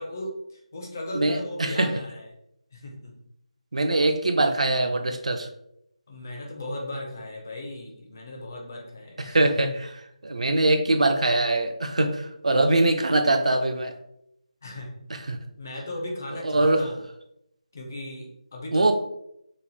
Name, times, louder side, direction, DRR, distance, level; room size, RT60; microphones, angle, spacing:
voice 1, 0.0-2.3 2.7-3.1 6.1-9.6 14.6-15.0 15.6-17.0 17.7-18.9, left 1 dB, 25° left, 0 dB, 0.4 m, -37 dB
voice 2, 1.1-1.9 3.7-5.5 9.3-9.7 10.2-13.9 15.3-15.4 16.4-16.8 18.7-18.9, right 2 dB, 65° right, 7 dB, 0.4 m, -22 dB
3.0 x 2.1 x 2.6 m, 0.79 s
figure-of-eight pair, 175°, 4 cm